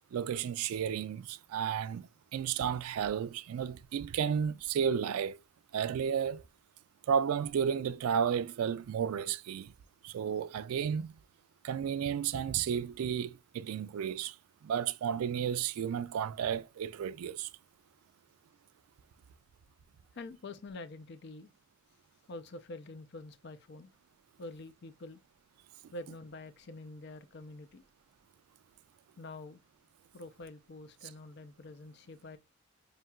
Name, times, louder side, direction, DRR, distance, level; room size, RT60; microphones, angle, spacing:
voice 1, 0.1-5.4 5.7-6.4 7.1-9.7 10.0-11.1 11.6-14.4 14.6-17.5, right 8 dB, 85° right, 0.3 m, -32 dB
voice 2, 20.1-21.5 22.3-23.9 24.4-25.2 25.9-27.8 29.2-29.6 30.1-32.4, left 2 dB, 50° left, 0.4 m, -46 dB
5.6 x 2.8 x 2.2 m
head